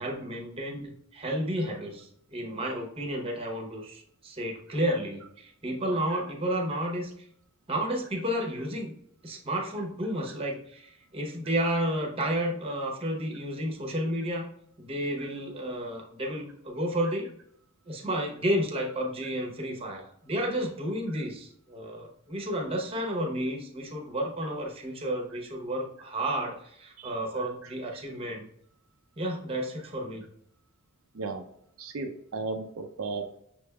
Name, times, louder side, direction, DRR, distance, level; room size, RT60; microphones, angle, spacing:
voice 1, 0.0-7.3 7.7-8.9 9.2-14.5 14.8-17.3 17.9-28.4 29.2-30.2, equal, 25° right, 1 dB, 0.9 m, -31 dB
voice 2, 31.8-33.4, right 3 dB, 75° right, 4 dB, 0.5 m, -35 dB
6.1 x 3.4 x 2.3 m, 0.72 s
head